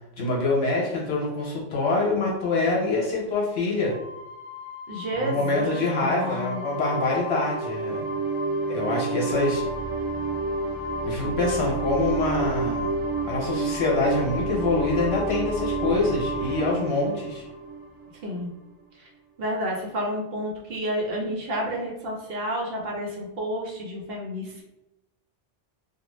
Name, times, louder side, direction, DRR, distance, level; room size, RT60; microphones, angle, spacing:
voice 1, 0.2-4.0 5.2-8.0 8.7-9.6 11.0-12.9 13.3-17.4, left 2 dB, 65° left, -2 dB, 0.9 m, -25 dB
sound 1, 3.9-18.3, right 2 dB, 25° right, 0.6 m, -30 dB
voice 2, 4.9-6.6 18.2-18.5 19.0-19.1 19.4-24.6, equal, 60° right, -1 dB, 0.8 m, -30 dB
2.4 x 2.3 x 3.0 m, 0.94 s
omnidirectional pair, 1.2 m